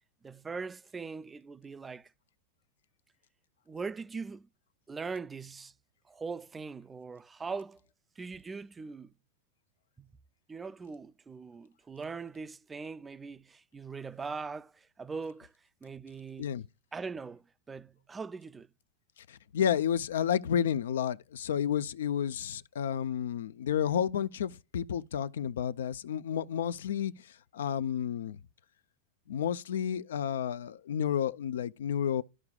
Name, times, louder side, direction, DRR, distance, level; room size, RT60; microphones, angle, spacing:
voice 1, 0.2-2.1 3.7-4.5 4.9-5.7 6.1-7.8 8.2-9.1 10.0-10.1 10.5-15.5 15.8-16.6 16.9-18.7, right 4 dB, 15° right, 0.3 m, -41 dB
voice 2, 19.3-28.4 29.3-32.2, left 9 dB, 85° left, 0.5 m, -31 dB
13.5 x 4.8 x 2.3 m
supercardioid pair, 135°, 0 cm